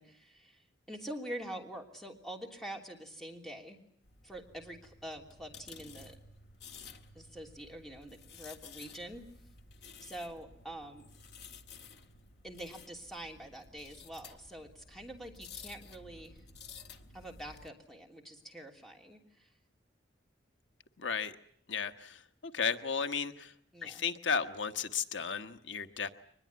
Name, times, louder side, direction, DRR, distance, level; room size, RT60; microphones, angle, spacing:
voice 1, 0.0-3.8 4.2-6.2 7.1-9.2 10.0-11.1 12.4-16.4 17.1-19.5 23.7-24.0, right 1 dB, ahead, 2 dB, 3.1 m, -45 dB
sound 1, 4.0-17.7, left 5 dB, 60° left, 1.9 m, -53 dB
voice 2, 21.0-21.4 21.7-22.2 22.5-23.5 23.8-26.1, left 6 dB, 90° left, 9 dB, 1.2 m, -34 dB
23.5 x 21.0 x 9.6 m, 0.66 s
head